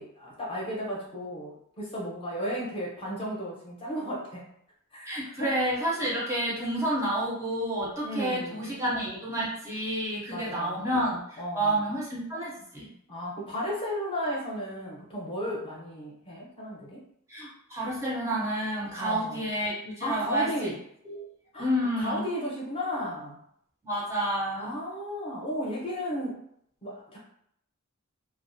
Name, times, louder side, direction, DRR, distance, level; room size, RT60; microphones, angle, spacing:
voice 1, 0.0-4.4 4.9-5.1 5.4-5.6 8.0-8.8 10.3-10.8 11.4-11.8 13.1-17.0 19.0-19.4 20.0-20.8 21.5-21.7 22.0-23.4 24.6-26.4 26.8-27.2, equal, 25° left, -4 dB, 0.6 m, -34 dB
voice 2, 5.0-12.9 17.3-20.7 21.1-21.2 21.6-22.2 23.8-24.7, right 1 dB, 15° right, -5 dB, 0.5 m, -30 dB
2.3 x 2.1 x 2.5 m, 0.70 s
head